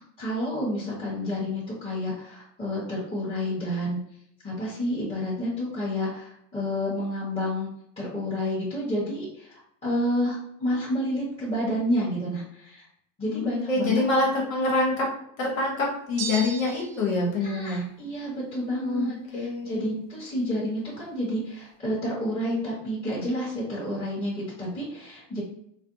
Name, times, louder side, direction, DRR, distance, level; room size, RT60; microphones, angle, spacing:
voice 1, 0.2-4.0 4.4-7.7 8.0-12.8 13.2-14.0 17.4-25.4, equal, 15° left, -11 dB, 1.1 m, -30 dB
voice 2, 13.3-15.1 15.4-17.8 18.8-19.9, left 2 dB, 85° left, -2 dB, 1.1 m, -26 dB
sound 1, 16.2-17.1, right 6 dB, 35° right, 0.4 m, -34 dB
2.5 x 2.1 x 2.6 m, 0.72 s
hypercardioid pair, 110°, 39 cm